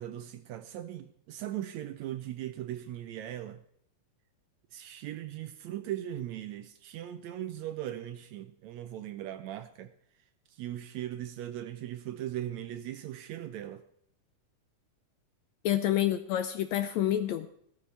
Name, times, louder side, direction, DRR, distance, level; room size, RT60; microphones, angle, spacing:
voice 1, 0.0-3.6 4.7-9.9 10.5-13.8, right 12 dB, 75° right, 1.7 m, -39 dB
voice 2, 15.6-17.5, left 12 dB, 80° left, 1.6 m, -28 dB
15.5 x 13.5 x 3.3 m
omnidirectional pair, 3.6 m